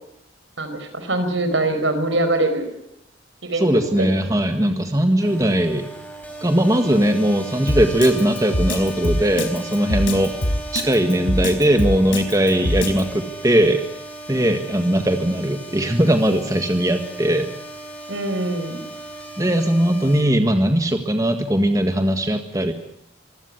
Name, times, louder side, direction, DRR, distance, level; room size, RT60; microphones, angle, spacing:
voice 1, 0.6-2.7 3.5-3.7 4.0-4.1 18.1-18.8, right 2 dB, 75° right, 8 dB, 4.9 m, -23 dB
voice 2, 3.6-5.9 6.4-10.3 10.7-13.8 14.3-17.5 19.4-22.7, right 1 dB, 15° right, 6 dB, 1.6 m, -19 dB
sound 1, 5.2-20.2, right 2 dB, 10° left, 5.1 m, -37 dB
Drum kit, 7.7-13.0, left 1 dB, 80° left, 4.7 m, -22 dB
25.0 x 16.0 x 9.7 m, 0.76 s
head